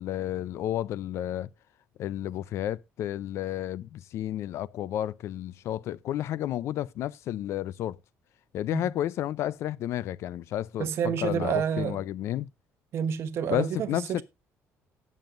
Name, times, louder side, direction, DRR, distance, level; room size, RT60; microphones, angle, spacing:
voice 1, 0.0-1.5 2.0-8.0 8.5-12.5 13.5-14.2, left 12 dB, 60° left, 0.4 m, -31 dB
voice 2, 10.8-12.0 12.9-14.2, right 8 dB, 50° right, 1.1 m, -29 dB
18.5 x 7.3 x 2.5 m
cardioid pair, 160°, 5 cm